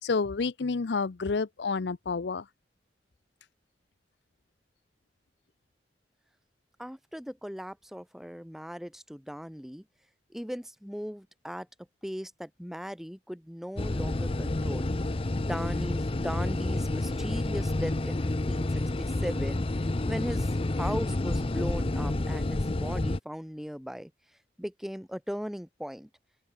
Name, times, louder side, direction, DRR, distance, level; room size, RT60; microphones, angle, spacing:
voice 1, 0.0-2.5, left 4 dB, 70° left, 0.6 m, -29 dB
voice 2, 6.8-9.8 10.3-11.7 12.0-14.9 15.4-19.6 20.1-20.5 20.7-24.1 24.6-26.1, equal, ahead, 2.0 m, -38 dB
sound 1, 13.8-23.2, left 2 dB, 30° left, 0.6 m, -29 dB
open air
head